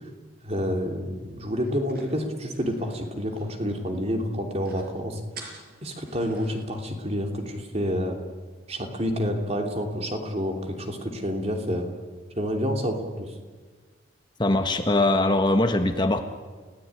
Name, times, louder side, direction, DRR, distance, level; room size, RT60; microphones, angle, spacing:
voice 1, 0.4-5.2 5.8-8.2 8.7-11.9 12.3-13.3, equal, 30° right, 4 dB, 3.2 m, -28 dB
sound 1, 1.6-4.0 4.3-4.4 4.6-4.9 5.3-6.7, right 4 dB, 50° right, 5.9 m, -47 dB
voice 2, 14.4-16.2, left 2 dB, 25° left, 6 dB, 1.3 m, -21 dB
29.5 x 17.5 x 9.9 m, 1.4 s
head